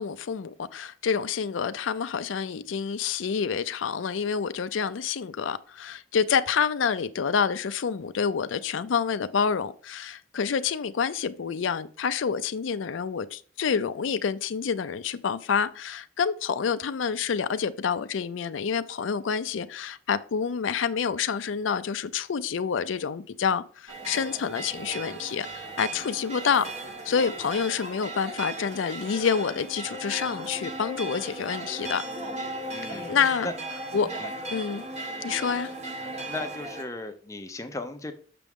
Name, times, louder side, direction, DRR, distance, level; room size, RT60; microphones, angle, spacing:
voice 1, 0.0-26.7 27.0-32.0 32.9-33.5 33.9-34.1 34.5-34.8 35.2-35.7, left 6 dB, 85° left, 0.4 m, -28 dB
sound 1, 23.9-36.8, right 1 dB, 35° right, 1.2 m, -37 dB
voice 2, 32.7-33.1 33.4-33.5 34.2-34.3 36.3-38.1, left 2 dB, 15° left, 0.6 m, -36 dB
6.7 x 6.1 x 3.6 m
head